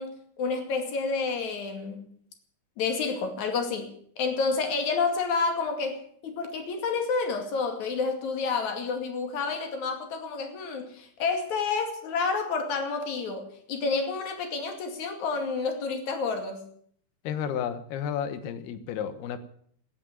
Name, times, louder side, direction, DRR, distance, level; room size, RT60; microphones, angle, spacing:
voice 1, 0.0-2.1 2.8-16.7, left 4 dB, 50° left, 5 dB, 3.2 m, -29 dB
voice 2, 17.2-19.4, left 8 dB, 70° left, 11 dB, 2.9 m, -32 dB
15.5 x 10.0 x 9.0 m, 0.64 s
omnidirectional pair, 5.1 m